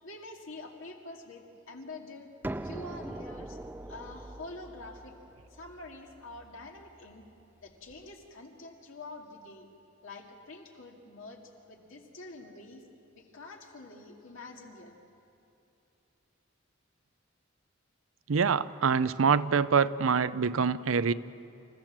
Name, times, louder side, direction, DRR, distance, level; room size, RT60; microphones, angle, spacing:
voice 1, 0.0-2.3 2.6-3.6 3.9-5.1 5.5-7.3 7.6-9.7 10.0-12.8 13.1-14.9, left 2 dB, 75° left, 1 dB, 2.3 m, -46 dB
sound 1, 2.4-8.0, right 1 dB, 10° right, 0.4 m, -43 dB
voice 2, 18.3-21.1, right 6 dB, 85° right, 15 dB, 0.6 m, -25 dB
27.0 x 14.5 x 7.4 m, 2.7 s
head